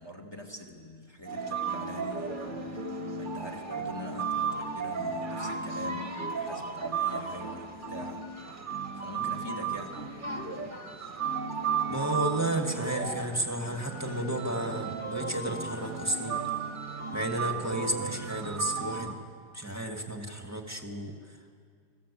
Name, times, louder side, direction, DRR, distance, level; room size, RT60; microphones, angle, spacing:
voice 1, 0.0-2.9 3.2-8.3 8.9-10.1, left 1 dB, 10° left, 2 dB, 2.4 m, -44 dB
sound 1, 1.3-19.1, right 5 dB, 25° right, 1.8 m, -34 dB
voice 2, 11.9-16.4 17.1-19.2 19.5-21.1, right 1 dB, 5° right, 3 dB, 2.1 m, -32 dB
28.5 x 20.0 x 8.6 m, 2.1 s
omnidirectional pair, 2.3 m